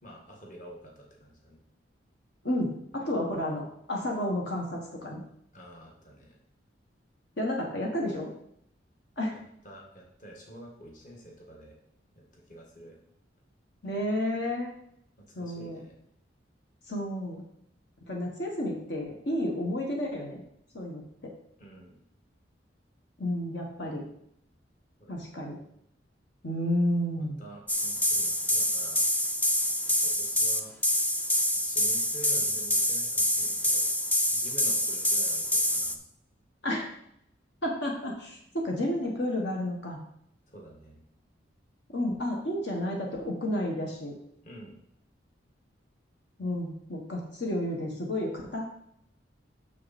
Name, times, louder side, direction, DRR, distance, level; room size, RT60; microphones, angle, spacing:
voice 1, 0.0-1.6 5.5-6.4 9.3-11.7 12.1-12.9 15.2-16.0 21.6-22.0 25.0-25.7 27.2-29.0 29.7-30.7 31.5-33.9 34.3-36.0 40.5-41.0 44.4-44.7, right 1 dB, 45° left, -1 dB, 1.7 m, -48 dB
voice 2, 2.4-5.2 7.4-8.3 9.2-9.3 13.8-14.7 15.3-15.8 16.9-17.4 18.1-20.4 20.7-21.3 23.2-24.0 25.1-25.6 26.4-27.4 36.6-36.9 37.6-40.0 41.9-44.1 46.4-48.6, left 1 dB, 70° left, -1 dB, 1.5 m, -31 dB
sound 1, 27.7-35.9, left 1 dB, 10° left, 0.5 m, -26 dB
6.8 x 6.5 x 4.3 m, 0.71 s
head